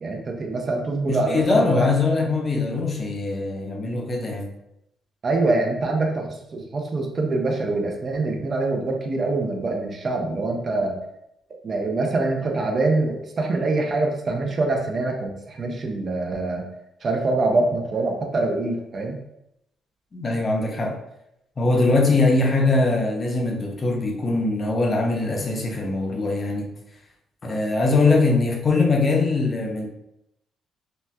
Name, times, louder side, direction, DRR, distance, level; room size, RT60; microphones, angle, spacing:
voice 1, 0.0-1.9 5.2-11.0 11.6-16.7 17.0-19.2, right 2 dB, 45° right, 1 dB, 0.6 m, -24 dB
voice 2, 1.0-4.5 20.1-21.0 21.6-26.7 27.4-29.9, left 3 dB, 35° left, 1 dB, 0.6 m, -22 dB
4.0 x 2.2 x 2.2 m, 0.81 s
cardioid pair, 90°, 0 cm